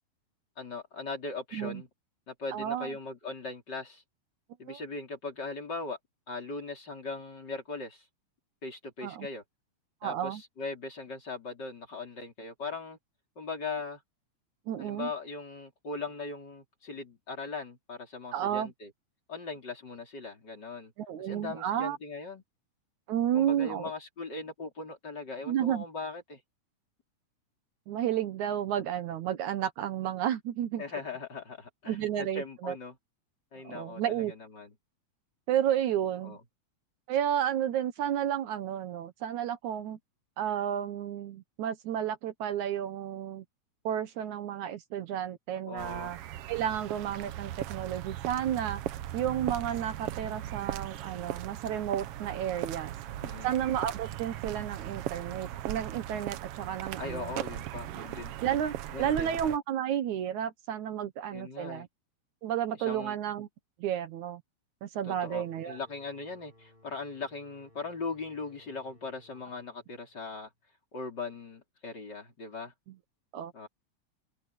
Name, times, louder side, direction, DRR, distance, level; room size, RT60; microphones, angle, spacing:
voice 1, 0.6-1.9 2.3-4.0 4.6-6.0 6.3-8.1 8.6-9.4 10.0-13.0 13.4-14.0 14.8-18.9 19.3-20.9 21.2-22.4 23.3-26.4 30.8-33.0 33.5-34.7 36.2-36.4 45.7-46.1 53.2-53.5 57.0-58.3 58.9-59.4 61.3-61.9 62.8-63.2 65.0-70.5 70.9-72.7 73.5-73.7, left 3 dB, 30° left, 4.3 m, -39 dB
voice 2, 2.5-2.9 4.7-4.8 9.0-9.3 10.0-10.4 14.7-15.1 18.3-18.7 21.0-22.0 23.1-23.9 25.5-25.9 27.9-30.8 31.9-32.8 33.6-34.3 35.5-36.4 37.1-40.0 40.4-43.5 43.8-46.2 46.5-48.8 49.1-52.9 53.4-57.3 58.4-61.9 62.4-63.5 63.8-64.4 64.8-65.8 73.3-73.5, right 10 dB, 70° right, 2.4 m, -32 dB
sound 1, 45.8-59.6, right 12 dB, 90° right, 1.3 m, -38 dB
sound 2, 65.1-70.6, left 1 dB, 15° right, 6.9 m, -60 dB
omnidirectional pair, 3.7 m